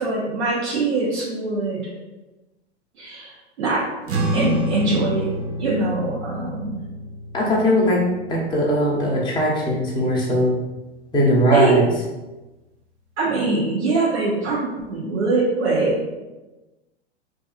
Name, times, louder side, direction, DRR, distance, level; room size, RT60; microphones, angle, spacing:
voice 1, 0.0-1.9 3.0-3.8 4.3-5.3 5.6-6.8 11.5-11.7 13.2-15.9, right 3 dB, 80° right, -5 dB, 0.7 m, -22 dB
sound 1, 4.1-10.7, equal, 30° right, 0.4 m, -29 dB
voice 2, 7.3-8.0 8.3-10.6 11.1-11.8, equal, 15° left, -4 dB, 0.6 m, -19 dB
2.7 x 2.3 x 2.3 m, 1.1 s
hypercardioid pair, 110°, 34 cm